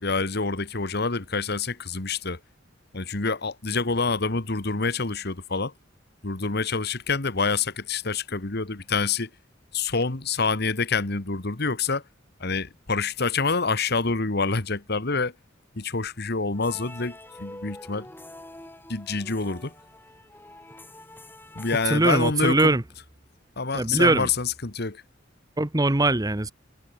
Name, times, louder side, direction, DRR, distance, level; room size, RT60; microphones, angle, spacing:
voice 1, 0.0-2.4 2.9-5.7 6.2-9.3 9.7-12.0 12.4-15.3 15.7-18.1 18.9-19.7 21.5-22.7 23.6-25.0, left 4 dB, 55° left, 1.7 m, -27 dB
sound 1, 16.5-22.8, left 1 dB, 10° left, 6.6 m, -46 dB
voice 2, 21.9-22.8 23.7-24.3 25.6-26.5, right 2 dB, 20° right, 0.9 m, -21 dB
head